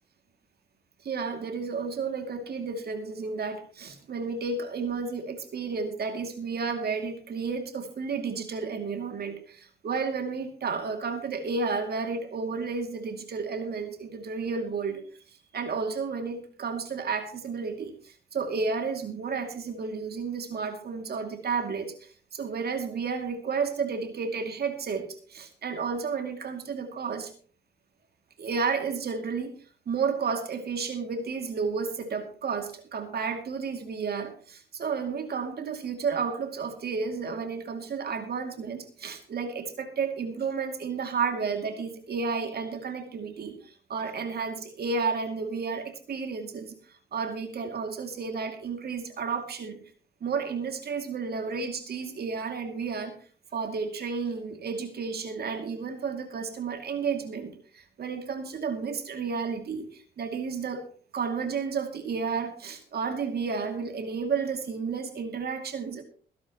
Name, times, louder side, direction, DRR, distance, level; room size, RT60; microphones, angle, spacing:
voice 1, 1.0-15.0 15.5-27.3 28.4-29.5 29.9-49.8 50.2-53.1 53.5-60.8 61.1-66.0, right 5 dB, 50° right, 5 dB, 2.5 m, -32 dB
22.5 x 11.0 x 3.0 m, 0.41 s
cardioid pair, 90°, 20 cm